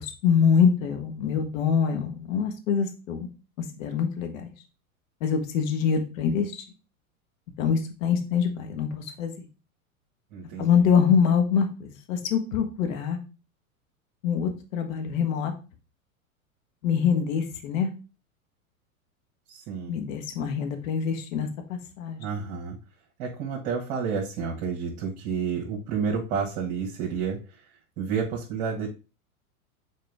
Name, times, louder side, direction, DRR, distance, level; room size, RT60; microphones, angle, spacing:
voice 1, 0.0-3.3 3.8-4.5 5.2-6.5 7.6-9.3 10.6-11.7 12.1-13.2 14.2-15.5 16.8-17.9 19.9-22.2, left 7 dB, 65° left, 5 dB, 1.6 m, -24 dB
voice 2, 10.3-10.8 19.5-20.0 22.2-22.8 23.2-27.4 28.0-28.9, right 6 dB, 45° right, -2 dB, 1.7 m, -30 dB
6.5 x 4.2 x 3.4 m, 0.33 s
hypercardioid pair, 105°, 43 cm